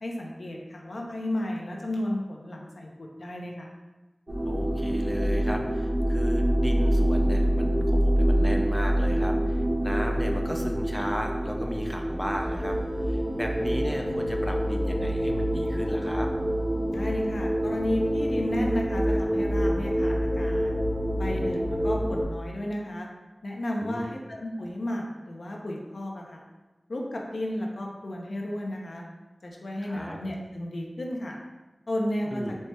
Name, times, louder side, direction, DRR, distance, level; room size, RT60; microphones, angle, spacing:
voice 1, 0.0-3.7 16.9-20.7 21.1-23.1 23.4-26.4 26.9-29.0 29.4-31.4 31.9-32.4, left 1 dB, 80° left, -1 dB, 0.5 m, -33 dB
sound 1, 4.3-22.2, equal, 45° right, 0.8 m, -26 dB
voice 2, 4.4-12.8 13.1-16.3 23.8-24.2 29.8-30.2 32.3-32.6, equal, 5° left, 2 dB, 0.4 m, -34 dB
4.2 x 2.2 x 3.1 m, 1.1 s
wide cardioid pair, 60°, 0 cm